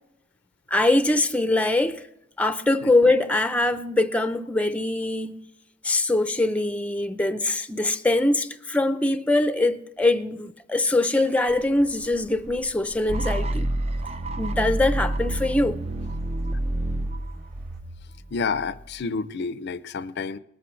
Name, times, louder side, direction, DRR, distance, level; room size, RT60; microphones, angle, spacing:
voice 1, 0.7-2.0 2.4-5.4 5.8-13.7 14.4-15.8, left 2 dB, 5° left, 0.6 m, -23 dB
sound 1, 11.5-17.8, equal, 60° right, 4.4 m, -48 dB
sound 2, 13.1-19.0, right 1 dB, 35° right, 0.6 m, -29 dB
voice 2, 18.3-20.4, left 4 dB, 60° left, 0.5 m, -29 dB
19.5 x 13.5 x 3.2 m
head